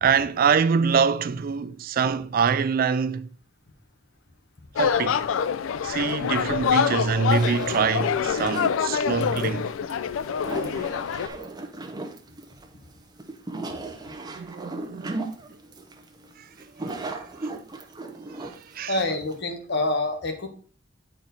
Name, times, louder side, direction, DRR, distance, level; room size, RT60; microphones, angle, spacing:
voice 1, 0.0-3.3 4.8-5.2 5.8-9.7 14.3-15.2 18.8-18.9, right 6 dB, 50° right, 0.4 m, -24 dB
sound 1, 4.8-11.3, left 7 dB, 85° left, 0.4 m, -26 dB
sound 2, 7.3-19.4, right 2 dB, 20° right, 0.7 m, -37 dB
voice 2, 18.9-20.5, left 2 dB, 60° left, 1.1 m, -26 dB
8.5 x 4.5 x 3.9 m
head